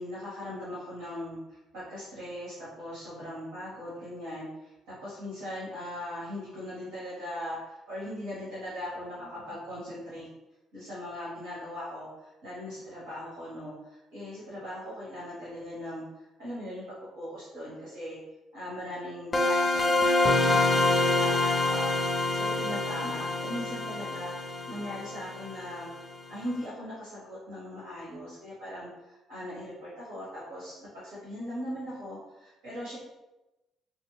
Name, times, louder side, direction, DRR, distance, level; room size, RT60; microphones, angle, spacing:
voice 1, 0.0-10.3 10.7-16.0 16.4-16.8 17.1-18.2 18.5-21.9 22.3-25.9 26.3-33.0, left 1 dB, 85° right, -9 dB, 1.2 m, -39 dB
sound 1, 19.3-26.0, left 2 dB, 35° left, 0.5 m, -26 dB
2.5 x 2.3 x 3.0 m, 1.0 s
hypercardioid pair, 55°, 0 cm